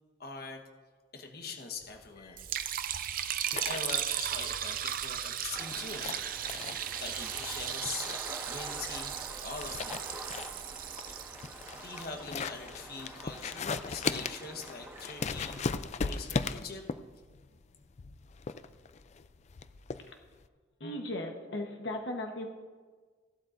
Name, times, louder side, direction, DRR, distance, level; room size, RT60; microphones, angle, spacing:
voice 1, 0.2-0.6 1.1-2.4 3.7-6.1 7.0-8.1 8.5-9.1 9.4-10.0 10.6-10.7 11.8-15.6 16.0-16.8, left 4 dB, 60° left, 3 dB, 1.2 m, -42 dB
sound 1, 1.8-20.4, left 5 dB, 40° left, 0.4 m, -39 dB
Liquid, 2.4-12.6, right 10 dB, 50° right, 0.5 m, -36 dB
sound 2, 5.5-15.7, right 1 dB, 15° right, 1.4 m, -46 dB
voice 2, 20.8-22.5, left 1 dB, 85° left, 3 dB, 1.1 m, -37 dB
17.0 x 12.0 x 2.6 m, 1.5 s
head